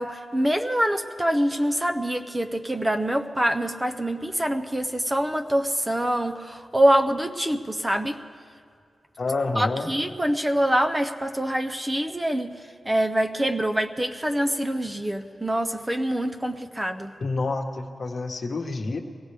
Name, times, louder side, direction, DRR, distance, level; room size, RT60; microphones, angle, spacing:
voice 1, 0.0-8.2 9.6-12.5 12.9-17.1, right 1 dB, 15° right, 6 dB, 0.6 m, -25 dB
voice 2, 9.2-9.9 17.2-19.0, left 3 dB, 55° left, 2 dB, 1.2 m, -28 dB
22.5 x 16.5 x 3.4 m, 2.3 s
wide cardioid pair, 110°, 0 cm